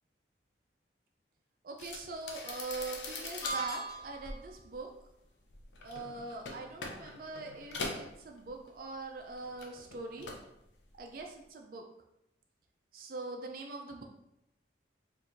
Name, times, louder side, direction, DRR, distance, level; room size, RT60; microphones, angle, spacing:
voice 1, 1.6-4.9 5.8-10.3 11.0-11.8 12.9-14.0, right 3 dB, 50° right, 2 dB, 0.3 m, -42 dB
sound 1, 1.8-9.0 9.3-10.5 10.8-11.2, left 3 dB, 75° left, 0.6 m, -43 dB
sound 2, 3.4-4.4, right 2 dB, 20° left, 0.4 m, -38 dB
4.5 x 2.5 x 2.5 m, 0.82 s
head